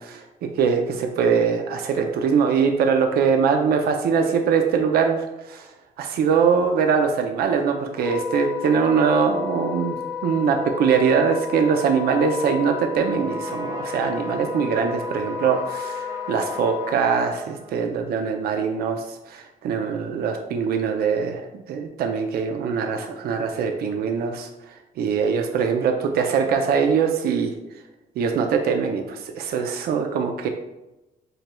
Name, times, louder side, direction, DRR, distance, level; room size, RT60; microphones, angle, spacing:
voice 1, 0.0-5.7 6.0-10.0 10.2-24.5 25.0-27.5 28.2-30.5, right 6 dB, 85° right, 4 dB, 0.5 m, -22 dB
Wind instrument woodwind instrument, 7.9-17.0, left 5 dB, 10° left, 0.5 m, -32 dB
Trumpet, 13.0-18.3, right 2 dB, 25° right, 0.7 m, -42 dB
7.6 x 3.1 x 2.2 m, 0.98 s
cardioid pair, 165°, 16 cm